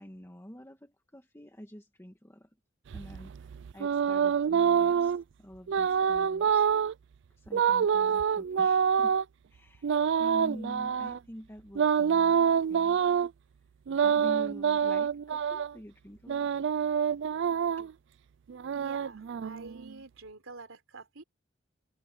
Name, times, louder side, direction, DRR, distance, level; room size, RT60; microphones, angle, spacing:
voice 1, 0.0-2.5 2.9-6.7 7.4-9.2 9.5-12.4 12.7-13.0 14.0-16.9 17.8-17.9, equal, 15° left, 1.9 m, -47 dB
sound 1, 2.9-5.2 5.7-6.9 7.5-9.2 9.8-11.2 11.8-13.3 13.9-15.7 16.3-17.9 18.5-19.9, right 7 dB, 60° right, 0.4 m, -26 dB
voice 2, 18.7-21.2, right 3 dB, 85° right, 3.7 m, -47 dB
head